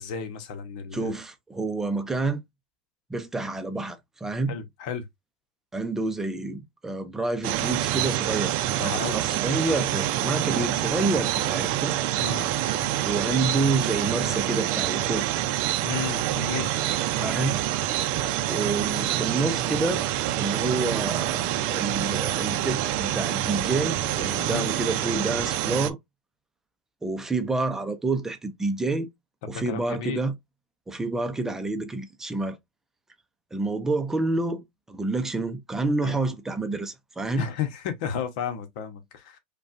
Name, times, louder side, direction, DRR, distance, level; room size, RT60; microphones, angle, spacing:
voice 1, 0.0-1.1 4.5-5.0 8.8-9.1 10.4-10.6 12.2-12.5 15.8-16.7 24.4-24.6 29.7-30.2 36.0-36.2 37.4-39.4, left 7 dB, 65° left, 1.0 m, -33 dB
voice 2, 0.9-2.4 3.1-4.5 5.7-11.9 13.0-15.3 17.2-17.6 18.4-20.1 20.4-26.0 27.0-29.1 29.5-30.4 30.9-32.6 33.5-37.5, right 3 dB, 10° right, 0.6 m, -28 dB
sound 1, 7.4-25.9, right 13 dB, 55° right, 0.5 m, -27 dB
5.3 x 2.3 x 2.5 m
supercardioid pair, 130°, 5 cm